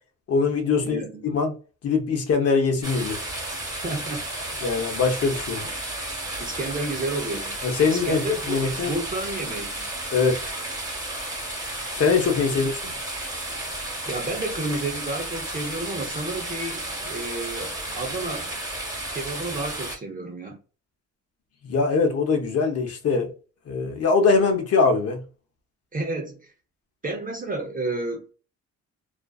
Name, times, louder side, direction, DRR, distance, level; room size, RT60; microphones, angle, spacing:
voice 1, 0.3-1.6 1.8-3.2 4.6-5.6 7.6-8.9 10.1-10.5 11.9-12.9 21.6-23.3 23.7-25.2, left 4 dB, 50° left, 0.8 m, -22 dB
voice 2, 0.8-1.3 3.8-4.2 6.4-7.6 7.9-9.9 14.1-18.5 19.1-20.6 25.9-26.5 27.0-28.2, right 2 dB, 30° right, 0.7 m, -31 dB
sound 1, 2.8-20.0, right 1 dB, 10° right, 1.2 m, -33 dB
2.5 x 2.3 x 2.3 m
cardioid pair, 90°, 30 cm